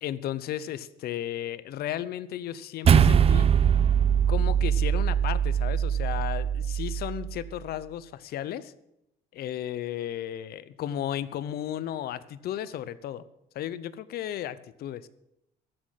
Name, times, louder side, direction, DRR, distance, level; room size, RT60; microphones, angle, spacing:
voice 1, 0.0-3.5 4.3-8.7 9.3-13.2 13.5-15.1, left 11 dB, 65° left, 17 dB, 0.8 m, -34 dB
sound 1, 2.8-7.4, right 8 dB, 35° right, 0.6 m, -22 dB
14.0 x 6.5 x 9.5 m, 0.82 s
cardioid pair, 110°, 17 cm